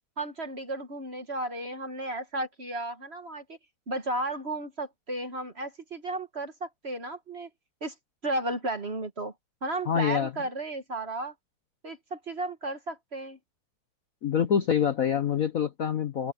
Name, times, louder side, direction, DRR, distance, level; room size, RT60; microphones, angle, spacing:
voice 1, 0.2-3.6 3.9-7.5 7.8-7.9 8.2-9.3 9.6-11.3 11.8-13.4, right 2 dB, 35° right, 1.5 m, -34 dB
voice 2, 9.9-10.3 14.2-16.3, left 8 dB, 55° left, 1.1 m, -26 dB
open air
omnidirectional pair, 2.3 m